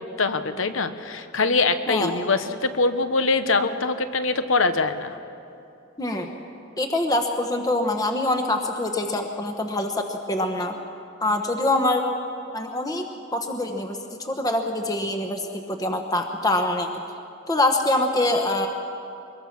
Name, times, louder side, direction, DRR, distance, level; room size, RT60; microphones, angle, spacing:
voice 1, 0.0-5.2, left 3 dB, 75° left, 10 dB, 1.1 m, -23 dB
voice 2, 6.0-6.3 6.8-10.7 11.2-12.0 12.5-13.1 13.3-16.9 17.5-18.7, left 1 dB, 20° left, 4 dB, 1.1 m, -24 dB
24.0 x 22.0 x 6.0 m, 2.6 s
head